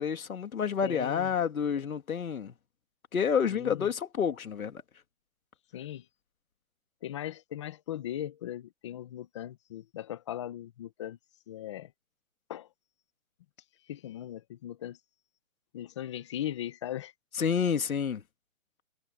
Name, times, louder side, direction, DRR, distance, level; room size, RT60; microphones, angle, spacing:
voice 1, 0.0-2.5 3.1-4.8 17.4-18.2, left 7 dB, 80° left, 2.3 m, -29 dB
voice 2, 0.8-1.3 3.5-3.9 5.7-6.0 7.0-11.2 11.5-11.9 12.5-12.7 13.9-15.0 15.7-17.1, left 11 dB, 20° left, 0.9 m, -38 dB
hypercardioid pair, 165°, 41 cm